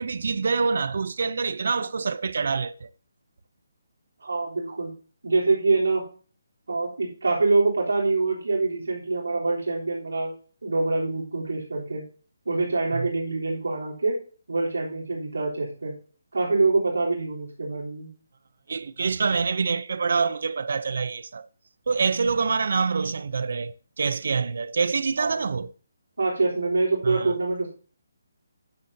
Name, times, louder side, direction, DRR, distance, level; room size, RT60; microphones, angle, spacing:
voice 1, 0.0-2.9 12.9-13.1 18.7-21.5 21.9-25.7 27.0-27.3, right 5 dB, 60° right, 0.7 m, -26 dB
voice 2, 4.2-4.9 5.2-6.0 6.7-10.3 10.6-12.0 12.5-14.2 14.5-15.9 16.3-18.1 25.2-25.4 26.2-27.7, right 3 dB, 90° right, 3.6 m, -25 dB
9.8 x 8.4 x 2.8 m
hypercardioid pair, 165°, 0 cm